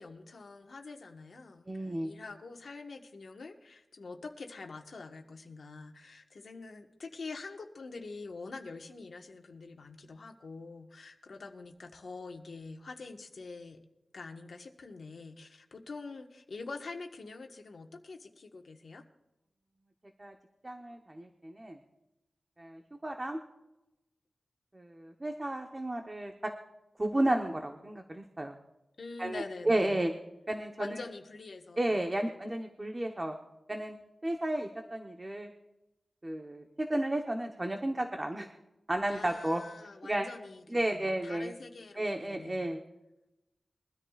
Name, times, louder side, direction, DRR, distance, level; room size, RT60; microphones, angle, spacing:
voice 1, 0.0-13.8 14.1-19.0 29.0-30.0 30.8-32.0 39.1-42.8, left 3 dB, 70° left, 3 dB, 1.4 m, -45 dB
voice 2, 1.7-2.1 20.2-20.3 20.6-21.8 22.6-23.4 24.7-26.3 27.0-28.6 29.2-30.1 30.5-31.0 31.8-33.3 33.7-34.0 34.2-35.5 36.2-38.5 38.9-39.6 40.0-40.3 40.7-41.5 42.0-42.8, right 1 dB, 20° right, 3 dB, 1.0 m, -33 dB
22.5 x 13.5 x 2.4 m, 0.93 s
wide cardioid pair, 120°, 0 cm